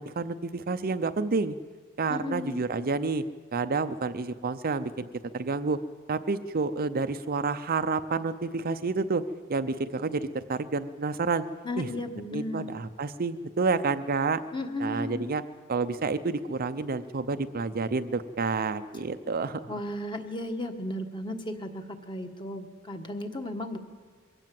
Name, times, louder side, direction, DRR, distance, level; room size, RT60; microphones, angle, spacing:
voice 1, 0.0-1.6 2.0-3.2 3.5-5.1 5.3-5.8 6.1-9.2 9.5-11.4 11.8-11.9 12.3-14.4 14.8-15.4 15.7-19.7, right 4 dB, 45° right, 10 dB, 0.6 m, -29 dB
voice 2, 2.1-2.6 11.6-12.7 14.5-15.3 19.7-23.8, left 1 dB, 20° left, 6 dB, 1.4 m, -35 dB
22.5 x 17.0 x 7.6 m, 1.5 s
head